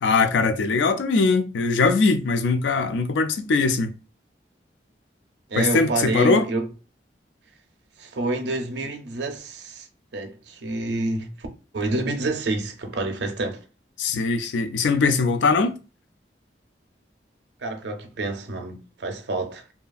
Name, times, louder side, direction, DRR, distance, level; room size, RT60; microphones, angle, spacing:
voice 1, 0.0-3.9 5.6-6.5 14.0-15.8, left 4 dB, 85° left, 0.3 m, -21 dB
voice 2, 5.5-6.7 8.0-9.9 10.1-11.5 11.7-13.6 17.6-19.6, right 2 dB, 75° right, 0.5 m, -28 dB
2.7 x 2.3 x 2.4 m
head